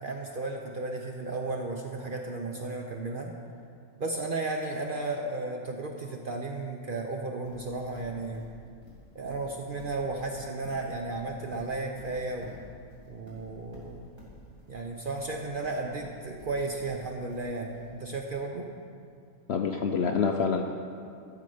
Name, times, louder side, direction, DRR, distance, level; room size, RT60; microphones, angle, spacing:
voice 1, 0.0-3.3 4.0-8.4 9.1-12.5 13.1-14.0 14.7-18.7, right 2 dB, 50° right, 1 dB, 0.6 m, -34 dB
Livestock farm animals working animals, 7.5-18.3, left 1 dB, 15° right, 2.7 m, -50 dB
voice 2, 19.5-20.6, left 6 dB, 65° left, 3 dB, 0.6 m, -26 dB
12.0 x 6.8 x 5.0 m, 2.3 s
omnidirectional pair, 1.5 m